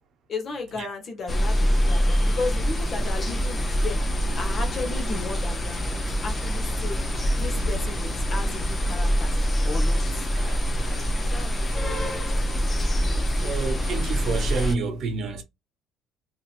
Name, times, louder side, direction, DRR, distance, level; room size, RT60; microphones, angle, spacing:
voice 1, 0.3-4.0 4.4-5.8 6.2-7.0 7.4-9.3 9.6-10.3 11.2-11.7, left 4 dB, 40° left, 1.2 m, -34 dB
sound 1, 1.3-14.8, equal, 20° left, 0.7 m, -25 dB
voice 2, 10.3-11.1 13.4-15.4, right 4 dB, 50° right, 0.8 m, -30 dB
3.0 x 2.8 x 2.5 m
cardioid pair, 130°, 0 cm